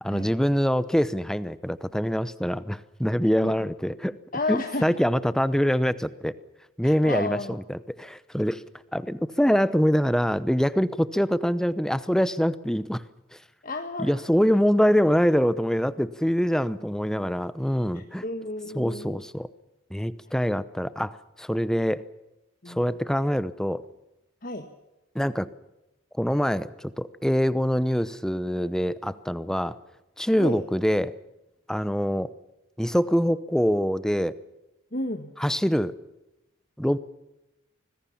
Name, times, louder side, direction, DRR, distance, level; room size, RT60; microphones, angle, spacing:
voice 1, 0.0-4.1 4.5-6.3 6.8-8.6 8.9-13.0 13.3-13.4 14.0-18.2 18.7-19.5 19.9-22.0 22.7-23.8 25.1-25.5 26.2-29.8 30.2-31.2 31.7-32.3 32.8-34.3 35.4-35.9 36.8-37.0, equal, 5° left, 15 dB, 0.8 m, -24 dB
voice 2, 4.3-4.9 6.8-7.6 13.6-14.2 17.9-19.2 22.6-22.9 24.4-24.7 30.4-30.6 34.9-35.3, left 2 dB, 40° left, 6 dB, 1.5 m, -32 dB
25.5 x 20.5 x 7.3 m, 0.94 s
head